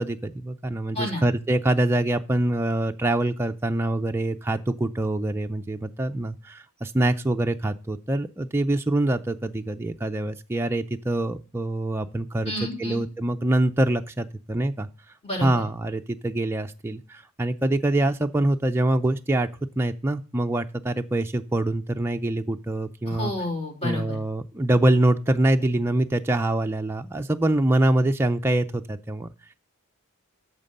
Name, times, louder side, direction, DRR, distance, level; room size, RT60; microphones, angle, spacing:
voice 1, 0.0-14.9 15.4-19.5 19.8-23.3 23.8-29.3, right 1 dB, 10° right, 5 dB, 0.3 m, -24 dB
voice 2, 12.5-13.0 15.2-15.6 23.1-24.2, left 1 dB, 30° left, -1 dB, 3.2 m, -30 dB
8.9 x 6.4 x 5.3 m, 0.35 s
head